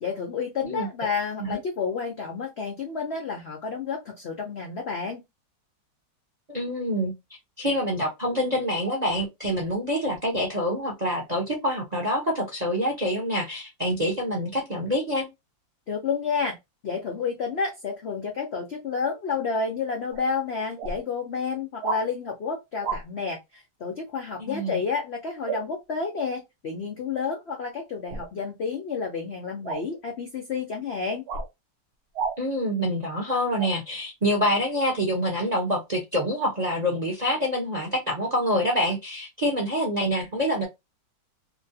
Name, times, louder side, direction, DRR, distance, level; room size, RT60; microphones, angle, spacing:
voice 1, 0.0-5.2 15.9-16.5 16.8-31.2, left 5 dB, 75° left, 0.6 m, -30 dB
voice 2, 6.5-7.1 7.6-15.3 24.4-24.8 32.4-40.7, equal, 40° right, 0.5 m, -26 dB
sound 1, 20.1-20.2 20.8-21.0 21.8-22.0 22.8-23.0 25.4-25.7 28.0-28.3 29.6-29.9 31.3-31.5 32.1-32.4 33.6-33.7, right 5 dB, 70° right, 1.0 m, -30 dB
3.0 x 2.6 x 2.7 m
omnidirectional pair, 2.0 m